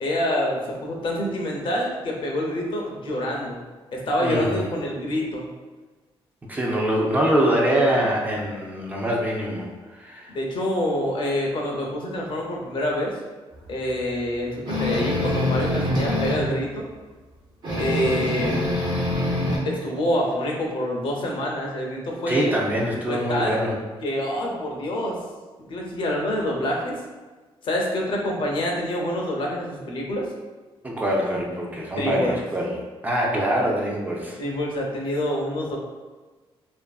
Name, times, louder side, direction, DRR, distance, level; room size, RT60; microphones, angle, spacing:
voice 1, 0.0-3.6 3.9-5.5 7.9-8.0 10.3-13.1 13.7-16.9 17.8-18.6 19.6-22.5 23.1-23.6 24.0-25.2 25.7-27.0 27.6-30.3 32.0-32.3 34.3-35.8, left 1 dB, 55° left, -1 dB, 0.5 m, -26 dB
voice 2, 4.2-4.7 6.5-10.3 22.3-23.8 30.8-32.8 33.0-34.4, equal, 15° right, -2 dB, 0.3 m, -24 dB
sound 1, 14.7-16.5 17.6-19.6, left 1 dB, 50° right, 0.6 m, -24 dB
2.6 x 2.5 x 2.3 m, 1.3 s
wide cardioid pair, 150°, 10 cm